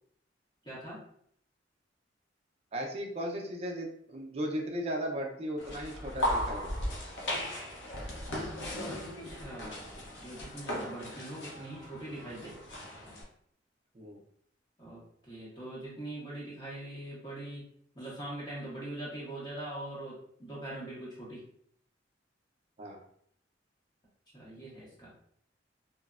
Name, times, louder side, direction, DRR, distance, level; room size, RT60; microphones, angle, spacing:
voice 1, 0.6-1.0 8.8-12.5 14.8-17.7 17.9-21.4 24.3-25.1, right 1 dB, 25° left, -7 dB, 0.8 m, -42 dB
voice 2, 2.7-6.7 13.9-14.2 22.8-23.0, equal, 35° right, 1 dB, 0.5 m, -36 dB
sound 1, 5.6-13.2, left 1 dB, 75° left, 0.7 m, -37 dB
3.0 x 2.0 x 2.3 m, 0.66 s
head